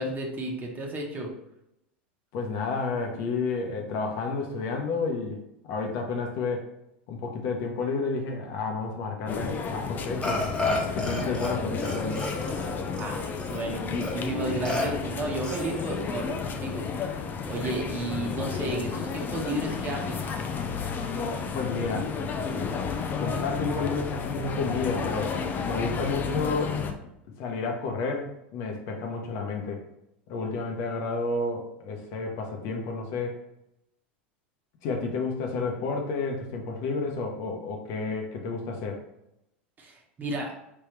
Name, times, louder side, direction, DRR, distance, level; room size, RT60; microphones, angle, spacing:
voice 1, 0.0-1.3 13.0-13.2 13.5-16.9 17.5-20.2 39.8-40.5, right 2 dB, 30° right, 1 dB, 1.2 m, -32 dB
voice 2, 2.3-6.7 7.1-10.5 10.9-12.2 21.4-22.1 23.2-25.3 25.7-26.8 27.4-29.8 30.3-33.4 34.8-39.0, left 4 dB, 55° left, 2 dB, 1.0 m, -31 dB
sound 1, 9.3-26.9, left 5 dB, 30° left, 0.6 m, -32 dB
Burping eructation, 10.2-11.5 11.8-13.6 14.0-14.1 14.7-14.9 15.4-16.0, left 2 dB, 15° left, 1.4 m, -31 dB
4.3 x 3.5 x 3.3 m, 0.83 s
hypercardioid pair, 95°, 6 cm